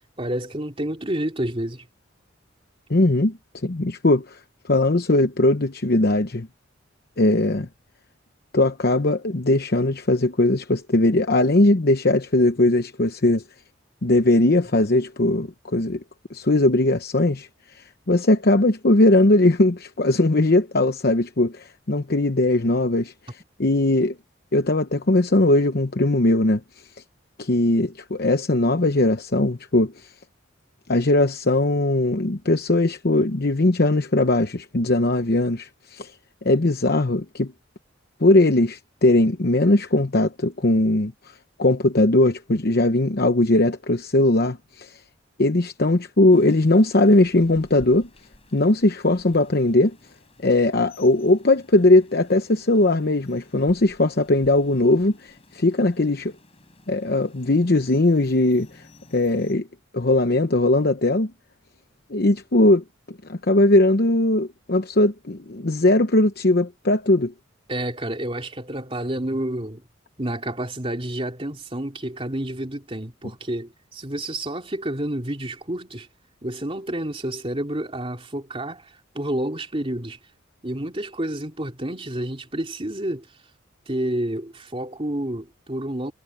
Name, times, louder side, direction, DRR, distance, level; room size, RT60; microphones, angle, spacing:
voice 1, 0.2-1.9 67.7-69.8 70.2-76.1 76.4-80.2 80.6-83.3 83.9-86.1, right 1 dB, 30° right, 3.1 m, -29 dB
voice 2, 2.9-4.4 4.6-6.5 7.2-7.7 8.5-13.4 14.0-16.0 16.3-24.2 24.5-26.6 27.4-30.1 30.9-36.2 36.4-37.5 38.2-45.0 45.4-48.1 48.5-50.0 50.4-56.3 56.9-58.8 59.1-59.7 59.9-61.3 62.1-67.3, left 2 dB, 50° left, 0.9 m, -20 dB
Rain, 46.3-59.5, left 1 dB, 30° left, 6.7 m, -52 dB
head